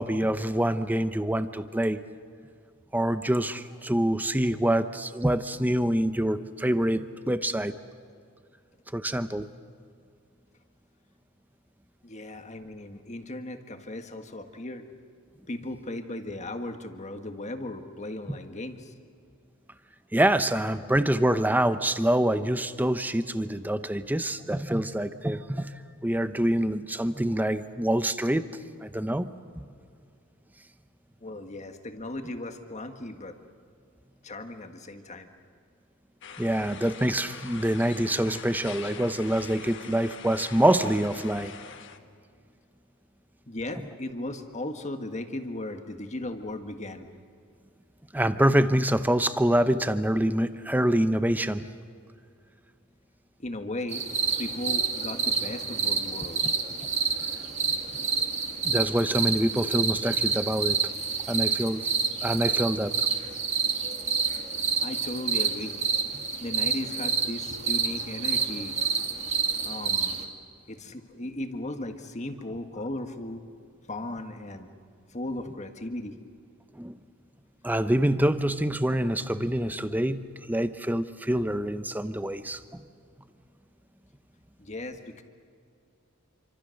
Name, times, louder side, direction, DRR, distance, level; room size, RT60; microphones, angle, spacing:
voice 1, 0.0-2.0 2.9-7.8 8.9-9.5 18.3-18.4 20.1-25.7 26.0-28.5 28.8-29.3 29.6-29.7 36.4-41.6 48.1-51.7 58.6-60.8 61.3-61.9 62.2-63.1 76.7-77.0 77.6-82.8, right 1 dB, 10° right, 11 dB, 0.8 m, -26 dB
voice 2, 12.0-14.9 15.5-18.9 31.2-33.4 34.2-35.3 43.5-47.1 53.4-54.0 54.4-56.6 64.8-65.7 66.4-68.7 69.6-70.2 70.7-73.4 73.9-74.7 75.1-76.2 84.6-85.2, left 1 dB, 30° left, 6 dB, 1.6 m, -36 dB
sound 1, 36.2-42.0, left 7 dB, 55° left, 1.3 m, -43 dB
sound 2, 53.9-70.2, right 5 dB, 30° right, 2.0 m, -28 dB
27.5 x 25.5 x 6.5 m, 2.4 s
head